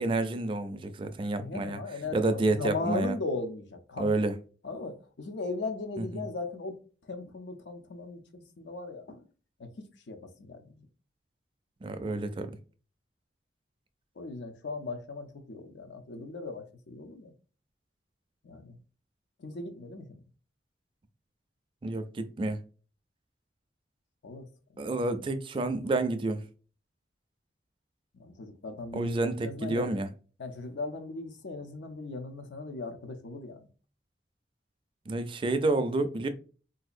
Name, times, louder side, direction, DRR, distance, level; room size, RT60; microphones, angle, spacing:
voice 1, 0.0-1.8 2.1-3.1 4.0-4.3 6.0-6.2 11.8-12.5 21.8-22.6 24.8-26.4 28.9-30.1 35.1-36.3, right 2 dB, 30° right, 0.3 m, -29 dB
voice 2, 1.4-4.2 4.6-6.8 7.1-9.2 9.6-9.7 10.1-10.9 14.2-17.3 18.4-18.8 19.4-20.1 24.2-24.5 24.7-24.8 28.1-29.1 29.4-30.0 30.4-33.7, left 3 dB, 90° left, 0.6 m, -38 dB
3.8 x 2.7 x 2.5 m
head